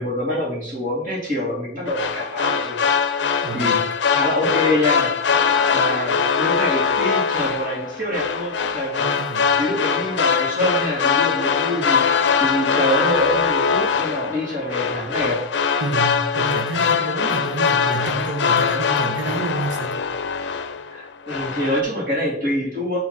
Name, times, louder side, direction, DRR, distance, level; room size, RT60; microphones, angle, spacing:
voice 1, 0.0-2.8 3.5-3.8 4.1-5.1 5.5-9.2 9.6-15.4 20.9-23.0, left 1 dB, 50° right, -4 dB, 2.5 m, -25 dB
sound 1, 1.9-21.0 21.3-21.8, left 6 dB, 75° left, 0.5 m, -22 dB
voice 2, 3.4-3.8 9.0-9.5 15.8-20.0, right 3 dB, 80° right, 3 dB, 1.3 m, -28 dB
8.7 x 3.1 x 4.1 m, 0.70 s
head